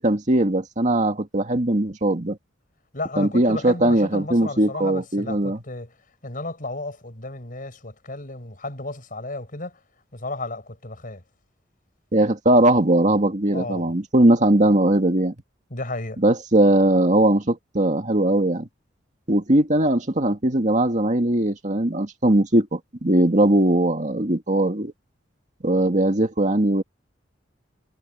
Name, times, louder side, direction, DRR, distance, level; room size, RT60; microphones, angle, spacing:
voice 1, 0.0-2.4 3.2-5.6 12.1-15.3 16.2-18.7 19.3-24.9 25.6-26.8, right 1 dB, 40° right, 2.1 m, -20 dB
voice 2, 2.9-5.9 6.2-9.8 10.1-11.2 13.5-13.9 15.7-16.2, left 2 dB, 45° left, 6.5 m, -33 dB
head